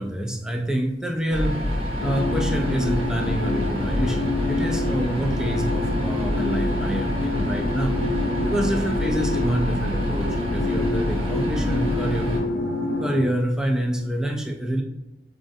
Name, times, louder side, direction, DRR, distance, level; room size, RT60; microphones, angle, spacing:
voice 1, 0.0-1.6 2.0-8.0 8.4-12.3 13.0-14.8, right 1 dB, 5° right, 2 dB, 0.3 m, -27 dB
sound 1, 1.3-12.4, equal, 30° right, 0.7 m, -27 dB
sound 2, 2.0-13.2, left 2 dB, 90° left, 0.5 m, -27 dB
5.0 x 2.5 x 2.4 m, 0.97 s
head